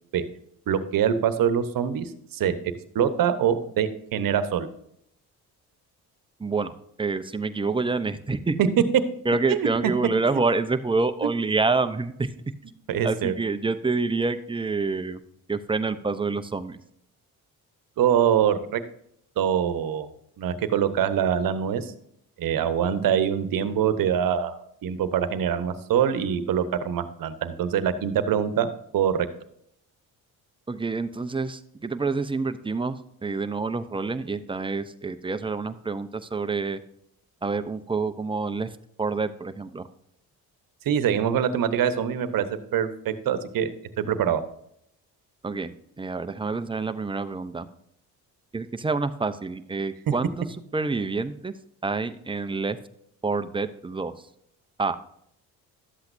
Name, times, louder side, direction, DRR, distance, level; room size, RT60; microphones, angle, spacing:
voice 1, 0.7-2.5 2.9-4.7 8.6-8.7 9.5-9.7 11.2-11.3 12.9-13.3 18.0-18.8 19.4-20.1 20.4-21.9 22.4-28.7 28.9-29.3 40.8-42.5 42.7-43.7 44.0-44.4, right 8 dB, 65° right, 11 dB, 1.0 m, -24 dB
voice 2, 6.4-8.6 9.3-12.3 13.0-15.2 15.5-16.8 30.7-33.0 33.2-36.8 37.4-38.7 39.0-39.9 45.4-47.7 48.5-50.5 50.7-51.5 51.8-52.8 53.2-54.1 54.8-55.0, right 3 dB, 15° right, 10 dB, 0.7 m, -27 dB
12.0 x 8.0 x 2.6 m, 0.72 s
cardioid pair, 85°, 37 cm